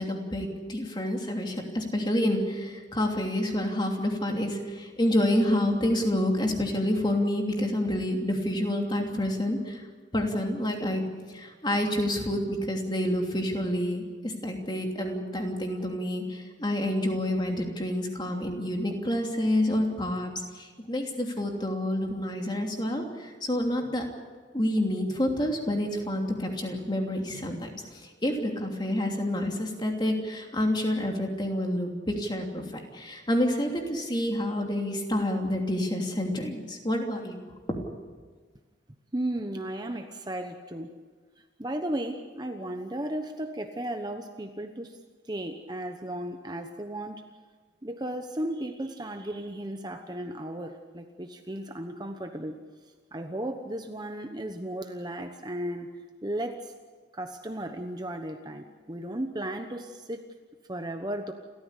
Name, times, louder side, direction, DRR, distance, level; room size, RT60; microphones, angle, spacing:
voice 1, 0.0-9.8 10.1-24.0 24.5-32.6 32.9-37.8, left 1 dB, 25° left, 2 dB, 2.9 m, -28 dB
voice 2, 39.1-40.9 41.6-45.0 45.3-47.2 47.8-52.6 53.1-55.9 56.2-56.7 57.1-60.2 60.7-61.3, right 1 dB, 20° right, 6 dB, 1.0 m, -35 dB
29.0 x 14.0 x 8.3 m, 1.5 s
head